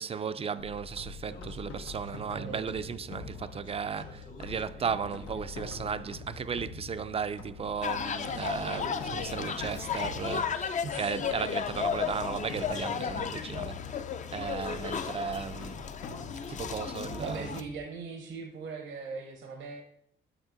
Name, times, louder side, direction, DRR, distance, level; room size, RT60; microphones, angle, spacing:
voice 1, 0.0-14.0 14.3-15.9 16.4-17.7, right 6 dB, 30° right, 0.4 m, -35 dB
sound 1, 0.6-17.8, left 5 dB, 90° left, 0.8 m, -45 dB
Speech, 1.2-6.4, left 1 dB, 75° left, 2.1 m, -52 dB
Nanjing Road East to Peoples Square Shanghai, 7.8-17.6, left 7 dB, 40° left, 0.5 m, -34 dB
voice 2, 10.8-11.3 17.2-19.8, right 4 dB, 70° right, 1.0 m, -40 dB
8.1 x 4.2 x 3.9 m
cardioid pair, 90°, 20 cm